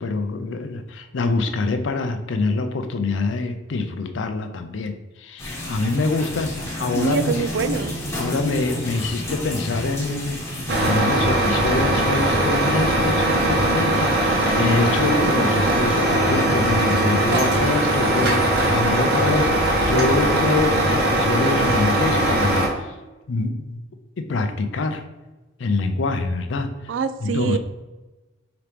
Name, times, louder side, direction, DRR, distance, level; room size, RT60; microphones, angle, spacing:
voice 1, 0.0-7.4 8.1-10.4 10.8-22.9 23.3-23.8 24.2-25.0 25.6-26.7 27.2-27.6, left 3 dB, 70° left, 7 dB, 0.5 m, -25 dB
sound 1, 5.4-11.0, left 1 dB, 15° left, 0.9 m, -30 dB
voice 2, 7.0-7.9 26.9-27.6, right 5 dB, 70° right, 12 dB, 0.3 m, -24 dB
Truck, 10.7-22.7, right 1 dB, 55° right, 0.9 m, -20 dB
5.0 x 2.9 x 3.4 m, 1.1 s
head